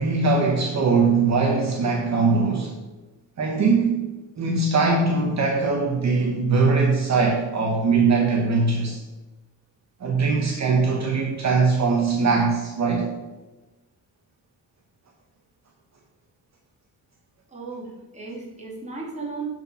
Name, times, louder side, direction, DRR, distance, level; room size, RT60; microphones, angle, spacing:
voice 1, 0.0-2.7 3.4-4.0 4.4-9.0 10.0-13.1, right 4 dB, 55° right, 0 dB, 1.2 m, -21 dB
voice 2, 17.5-19.5, right 4 dB, 20° right, -5 dB, 2.6 m, -35 dB
11.5 x 4.6 x 5.6 m, 1.1 s
wide cardioid pair, 160°, 34 cm